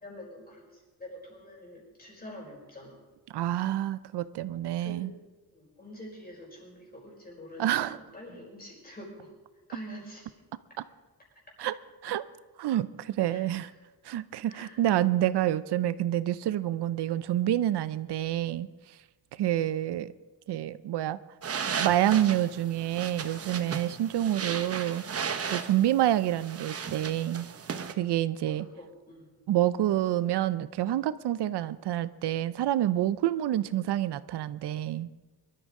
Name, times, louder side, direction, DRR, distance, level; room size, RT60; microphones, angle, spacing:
voice 1, 0.0-3.0 4.8-5.1 5.5-9.3 9.7-10.3 10.7-10.8 13.3-13.7 14.5-14.8 28.2-29.3, equal, 25° left, -2 dB, 4.8 m, -46 dB
voice 2, 3.3-5.1 7.6-8.0 11.6-11.7 12.0-12.2 12.6-13.7 14.0-18.7 19.3-20.1 20.5-21.2 21.7-25.0 25.4-27.5 28.0-28.7 29.5-35.1, right 12 dB, 90° right, 16 dB, 0.6 m, -28 dB
sound 1, 21.4-27.9, right 6 dB, 40° right, 0.9 m, -36 dB
23.0 x 13.0 x 3.7 m, 1.2 s
wide cardioid pair, 160°, 39 cm